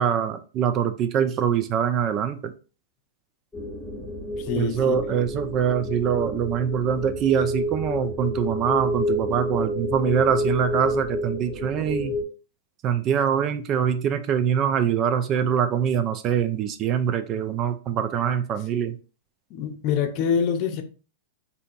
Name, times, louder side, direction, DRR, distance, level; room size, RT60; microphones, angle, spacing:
voice 1, 0.0-2.5 4.6-12.1 12.8-19.0, right 8 dB, 35° right, 0.4 m, -24 dB
sound 1, 3.5-12.2, left 1 dB, ahead, 1.1 m, -29 dB
voice 2, 4.4-5.2 19.5-20.8, left 7 dB, 45° left, 0.6 m, -26 dB
4.2 x 2.7 x 2.6 m
hypercardioid pair, 110°, 0 cm